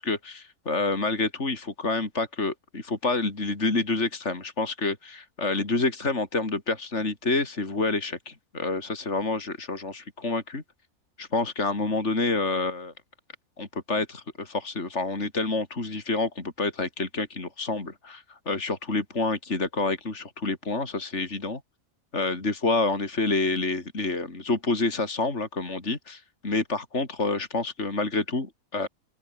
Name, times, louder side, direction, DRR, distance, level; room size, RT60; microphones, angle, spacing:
voice 1, 0.0-10.6 11.2-12.9 13.6-21.6 22.1-28.9, left 3 dB, 50° left, 4.1 m, -28 dB
open air
omnidirectional pair, 1.5 m